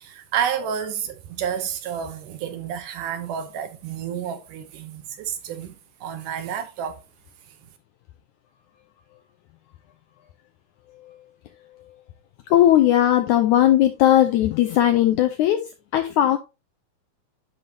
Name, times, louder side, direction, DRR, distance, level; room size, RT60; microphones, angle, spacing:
voice 1, 0.0-5.8 6.0-7.0, right 8 dB, 75° right, 2.1 m, -30 dB
voice 2, 12.5-15.6 15.9-16.4, left 12 dB, 85° left, 1.7 m, -18 dB
10.5 x 5.6 x 2.7 m
omnidirectional pair, 4.1 m